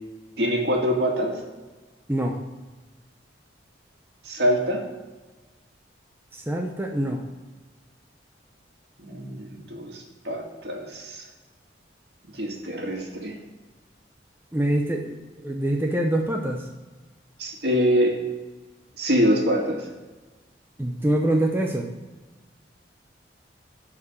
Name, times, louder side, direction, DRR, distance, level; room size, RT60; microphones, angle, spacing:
voice 1, 0.4-1.4 4.2-4.8 9.0-11.2 12.3-13.4 17.4-18.2 19.0-19.9, equal, 60° right, 0 dB, 2.2 m, -24 dB
voice 2, 6.3-7.2 14.5-15.2 15.4-16.6 20.8-21.9, right 1 dB, 10° right, 2 dB, 0.7 m, -24 dB
11.5 x 4.9 x 6.9 m, 1.2 s
head